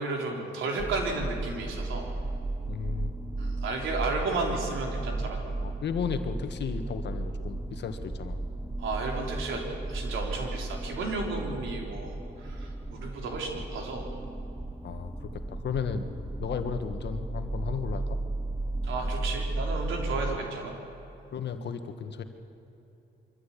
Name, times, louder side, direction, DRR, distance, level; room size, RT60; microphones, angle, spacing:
voice 1, 0.0-2.1 3.4-5.5 8.8-14.1 18.8-20.7, right 3 dB, 80° right, 1 dB, 3.8 m, -33 dB
sound 1, 0.8-20.4, right 2 dB, 5° right, 0.9 m, -34 dB
voice 2, 2.7-3.1 5.6-8.4 14.8-16.1 16.4-18.2 20.1-20.2 21.3-22.2, left 6 dB, 60° left, 8 dB, 1.7 m, -34 dB
24.0 x 14.5 x 8.6 m, 3.0 s
cardioid pair, 90°, 20 cm